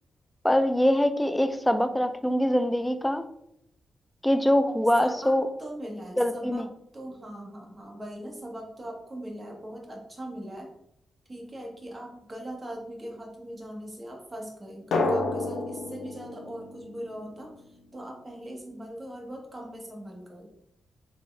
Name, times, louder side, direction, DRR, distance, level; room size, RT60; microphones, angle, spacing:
voice 1, 0.4-3.2 4.2-5.5 6.2-6.6, equal, 10° left, 9 dB, 0.4 m, -23 dB
voice 2, 5.0-6.7 6.9-10.7 11.3-20.5, right 1 dB, 20° right, 0 dB, 1.2 m, -40 dB
Drum, 14.9-17.6, left 2 dB, 85° left, 0.8 m, -30 dB
4.3 x 3.6 x 3.2 m, 0.77 s
cardioid pair, 105°, 0 cm